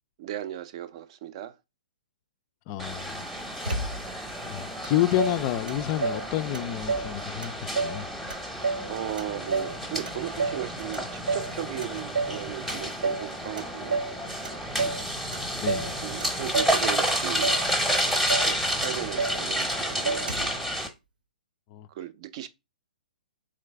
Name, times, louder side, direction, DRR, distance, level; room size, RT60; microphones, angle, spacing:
voice 1, 0.2-1.6 8.8-14.0 15.7-17.5 18.0-20.7 21.9-22.5, right 12 dB, 45° right, 0.5 m, -36 dB
voice 2, 2.7-3.2 4.4-8.1 15.5-16.0 21.7-21.9, left 14 dB, 35° left, 0.3 m, -29 dB
sound 1, 2.8-20.9, equal, 5° right, 0.8 m, -30 dB
Motor vehicle (road), 3.7-4.3 4.8-4.9 5.2-6.3 6.5-7.1 7.4-8.0 8.3-9.8 10.1-10.7 10.9-11.5 11.8-12.4 12.7-13.3 13.6-14.2 14.5-15.0 15.3-15.9 16.2-16.8 17.1-17.7 18.0-18.1 18.3-18.5 18.8-19.4 19.7-19.8 20.1-20.6, right 4 dB, 80° right, 0.8 m, -30 dB
3.8 x 3.3 x 3.3 m
figure-of-eight pair, 125°, 5 cm